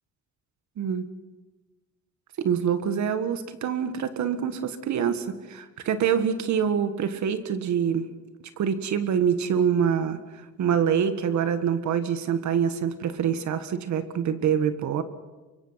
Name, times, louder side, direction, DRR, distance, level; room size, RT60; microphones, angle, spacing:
voice 1, 0.8-1.1 2.4-8.0 8.6-10.2 10.6-15.0, right 8 dB, 70° right, 10 dB, 1.7 m, -25 dB
25.0 x 23.0 x 5.8 m, 1.2 s
cardioid pair, 90°, 30 cm